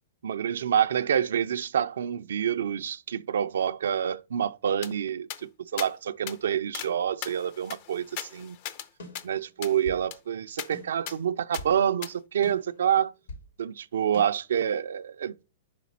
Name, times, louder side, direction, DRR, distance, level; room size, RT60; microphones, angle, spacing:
voice 1, 0.2-8.6 9.2-13.1 13.6-15.4, right 9 dB, 80° right, 0.4 m, -27 dB
sound 1, 4.8-4.9 5.3-5.4 5.8-5.9 6.3-6.4 6.7-6.9 7.2-8.9 9.1-9.3 9.6-9.8 10.1-10.2 10.6-10.7 11.1-11.2 11.5-11.6 12.0-12.1, left 10 dB, 45° left, 0.6 m, -38 dB
sound 2, 9.0-10.1 10.7-11.8 12.4-13.5 14.1-14.2, left 2 dB, 80° left, 3.3 m, -44 dB
5.0 x 5.0 x 4.1 m
hypercardioid pair, 140°, 0 cm